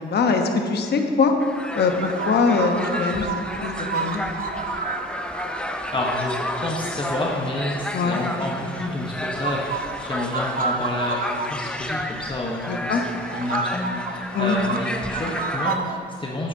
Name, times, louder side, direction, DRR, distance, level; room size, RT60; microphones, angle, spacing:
voice 1, 0.0-1.3 1.7-3.3 3.6-4.2 7.9-8.2 12.7-13.0 14.3-14.6, left 4 dB, 55° left, 4 dB, 1.0 m, -22 dB
sound 1, 1.4-15.8, left 1 dB, 5° left, 0.5 m, -32 dB
sound 2, 2.0-7.2 7.9-8.9 9.3-11.5 12.0-12.1 12.6-12.7 13.3-16.0, right 5 dB, 45° right, 0.8 m, -30 dB
voice 2, 5.9-6.3 6.6-16.5, left 2 dB, 25° left, -2 dB, 1.1 m, -29 dB
9.7 x 9.2 x 2.8 m, 2.1 s
cardioid pair, 90°, 20 cm